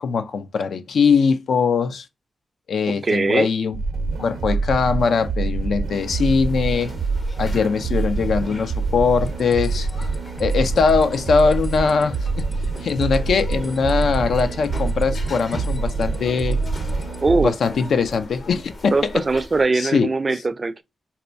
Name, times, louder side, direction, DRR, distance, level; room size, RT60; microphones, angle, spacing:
voice 1, 0.0-2.1 2.7-3.8 4.2-7.0 7.4-9.9 10.4-12.4 12.8-16.6 17.4-19.2 19.7-20.1, left 5 dB, 75° left, 0.3 m, -21 dB
voice 2, 3.0-3.5 17.2-17.5 18.9-20.8, right 3 dB, 45° right, 0.4 m, -21 dB
sound 1, 3.7-17.4, right 4 dB, 85° right, 0.6 m, -25 dB
sound 2, 5.9-19.7, left 1 dB, 60° left, 0.9 m, -39 dB
sound 3, 9.3-17.2, left 1 dB, 20° left, 0.5 m, -43 dB
4.1 x 2.2 x 2.5 m
supercardioid pair, 45°, 0 cm